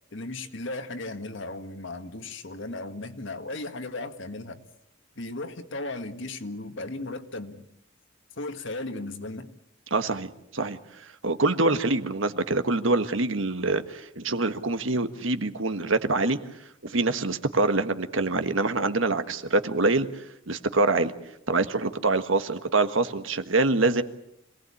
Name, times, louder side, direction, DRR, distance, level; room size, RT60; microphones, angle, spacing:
voice 1, 0.1-4.6 5.1-7.6 8.3-9.5, left 2 dB, 65° left, 7 dB, 1.8 m, -36 dB
voice 2, 9.9-10.8 11.2-16.4 16.8-21.1 21.5-24.0, right 3 dB, 75° right, 9 dB, 1.5 m, -25 dB
26.5 x 18.5 x 8.5 m, 0.80 s
head